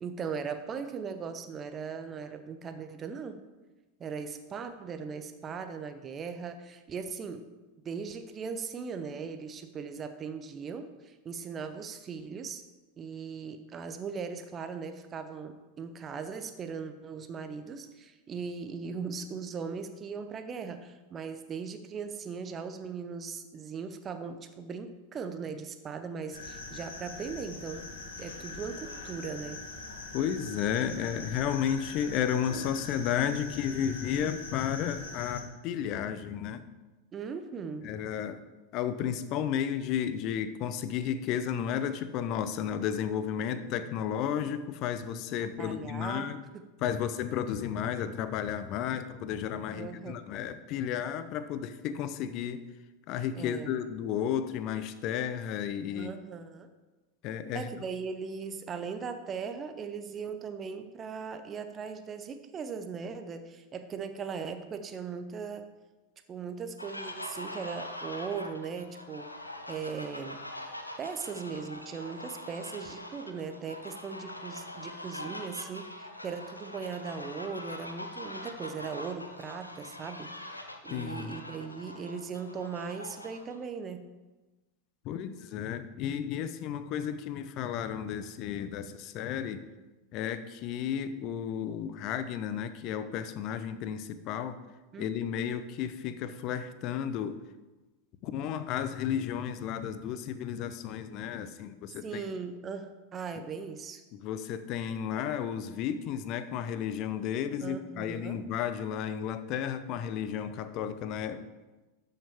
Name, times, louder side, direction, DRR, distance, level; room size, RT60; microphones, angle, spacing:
voice 1, 0.0-3.4 4.0-7.5 7.8-12.6 13.0-27.9 28.2-29.6 37.1-37.9 45.6-46.6 49.7-50.2 53.4-53.9 55.9-56.7 57.5-65.7 66.3-69.3 69.7-70.4 71.0-84.1 94.9-95.1 102.0-104.0 107.6-108.4, right 5 dB, 25° right, 8 dB, 0.8 m, -39 dB
sound 1, 26.3-35.4, left 3 dB, 65° left, 1.5 m, -43 dB
voice 2, 30.1-36.7 37.8-38.4 38.7-46.4 46.8-52.6 53.1-56.1 57.2-57.7 80.9-81.4 85.0-89.6 90.1-94.6 95.0-97.4 98.2-102.2 104.1-111.5, left 9 dB, 45° left, 12 dB, 0.6 m, -33 dB
sound 2, 66.8-83.6, left 1 dB, 90° left, 0.7 m, -43 dB
12.0 x 5.7 x 3.6 m, 1.2 s
figure-of-eight pair, 90°, 0 cm